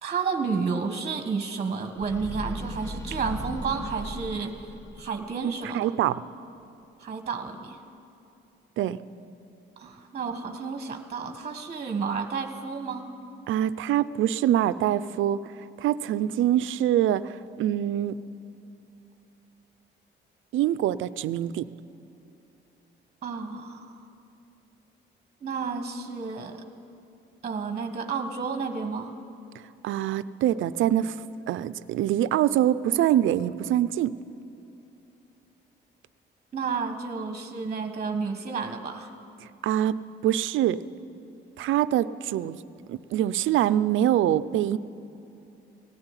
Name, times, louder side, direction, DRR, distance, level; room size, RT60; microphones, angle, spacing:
voice 1, 0.0-5.9 7.0-7.8 9.8-13.1 23.2-24.0 25.4-26.6 27.4-29.2 36.5-39.1, right 5 dB, 35° right, 6 dB, 1.5 m, -31 dB
sound 1, 2.0-5.2, equal, 15° left, 1.2 m, -37 dB
voice 2, 5.4-6.2 8.8-9.0 13.5-15.4 15.8-18.2 20.5-21.7 29.8-31.2 31.5-34.1 39.6-40.8 41.6-42.6 42.9-44.8, right 11 dB, 80° right, 14 dB, 0.6 m, -24 dB
18.5 x 14.5 x 9.9 m, 2.8 s
cardioid pair, 90°, 20 cm